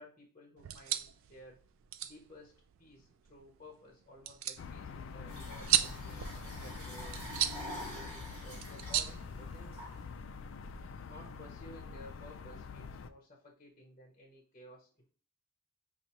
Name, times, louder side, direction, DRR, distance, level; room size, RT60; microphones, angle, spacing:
voice 1, 0.0-1.6 2.0-2.5 2.8-7.2 7.7-9.8 11.0-15.1, left 1 dB, 30° left, 0 dB, 0.7 m, -55 dB
sound 1, 0.6-10.0, right 11 dB, 65° right, 0.3 m, -37 dB
sound 2, 4.6-13.1, left 5 dB, 60° left, 0.4 m, -46 dB
sound 3, 5.3-10.3, equal, 25° right, 1.7 m, -46 dB
5.3 x 2.5 x 2.9 m, 0.42 s
head